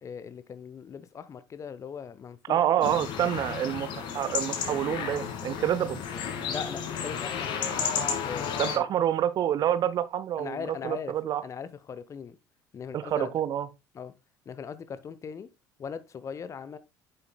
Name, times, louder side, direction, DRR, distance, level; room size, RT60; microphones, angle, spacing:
voice 1, 0.0-2.9 6.5-7.5 8.2-8.9 10.4-11.1 11.4-12.4 12.7-13.3 13.9-14.1 14.5-15.5 15.8-16.8, left 6 dB, 30° left, 0.7 m, -39 dB
voice 2, 2.5-6.0 8.6-11.4 12.9-13.7, right 10 dB, 40° right, 0.7 m, -27 dB
sound 1, 2.8-8.8, left 7 dB, 50° left, 1.8 m, -32 dB
8.9 x 6.7 x 2.2 m
figure-of-eight pair, 60°, 10 cm